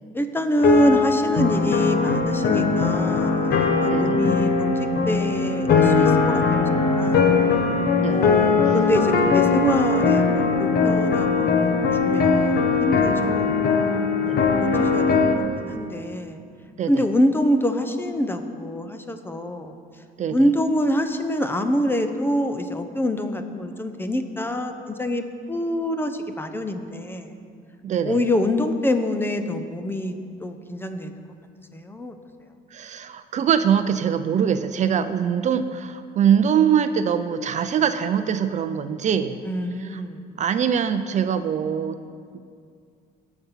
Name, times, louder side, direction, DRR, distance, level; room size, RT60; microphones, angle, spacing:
voice 1, 0.1-7.3 8.1-11.7 12.0-13.6 14.2-14.5 14.8-15.0 15.6-16.4 16.9-19.7 20.3-25.2 25.5-27.3 28.0-30.1 30.4-31.2 31.7-32.1 39.4-40.2, equal, 15° left, 7 dB, 0.8 m, -25 dB
sound 1, 0.6-15.3, left 4 dB, 65° left, 1.3 m, -20 dB
voice 2, 3.9-4.2 8.0-8.3 8.7-8.8 14.3-14.5 16.8-17.0 20.2-20.5 27.8-28.2 32.7-39.4 39.8-40.0 40.4-42.0 42.3-42.4, right 8 dB, 45° right, 10 dB, 0.5 m, -23 dB
17.5 x 6.0 x 5.7 m, 2.3 s
cardioid pair, 110°, 17 cm